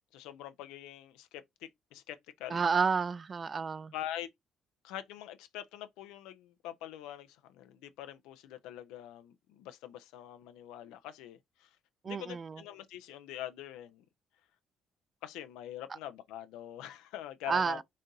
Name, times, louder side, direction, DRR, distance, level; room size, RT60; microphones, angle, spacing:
voice 1, 0.1-2.6 3.9-4.3 4.8-11.7 12.1-14.0 15.2-17.8, left 12 dB, 85° left, 0.5 m, -44 dB
voice 2, 2.5-3.9 12.0-12.6 17.5-17.8, right 5 dB, 40° right, 0.3 m, -30 dB
4.1 x 2.6 x 3.8 m
supercardioid pair, 65°, 0 cm